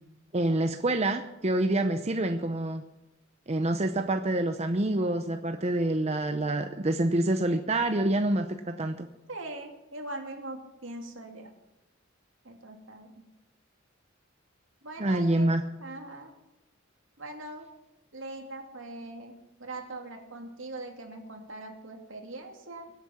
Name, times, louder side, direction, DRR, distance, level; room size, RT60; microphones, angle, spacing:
voice 1, 0.3-2.8 3.5-9.1 15.0-15.6, right 1 dB, 30° right, 6 dB, 0.7 m, -27 dB
voice 2, 9.3-11.5 12.4-13.2 14.8-16.3 17.2-17.7 18.1-22.9, right 2 dB, 70° right, 3 dB, 2.7 m, -41 dB
23.0 x 8.3 x 5.9 m, 0.94 s
head